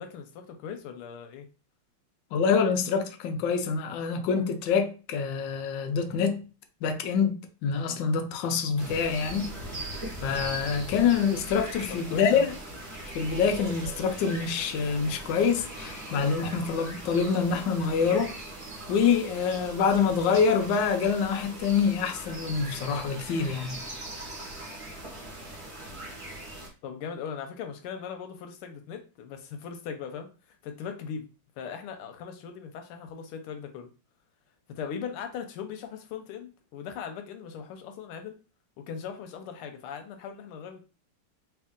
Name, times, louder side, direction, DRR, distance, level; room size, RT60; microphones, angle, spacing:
voice 1, 0.0-1.5 11.9-12.4 26.8-31.3 31.6-33.9 34.7-38.4 38.8-40.8, left 7 dB, 90° left, 1.6 m, -39 dB
voice 2, 2.3-6.4 6.8-9.9 10.2-12.5 13.1-18.3 18.9-23.8, left 6 dB, 70° left, 1.2 m, -26 dB
sound 1, 8.8-26.7, right 1 dB, 25° right, 0.7 m, -40 dB
3.5 x 2.9 x 3.6 m
omnidirectional pair, 2.3 m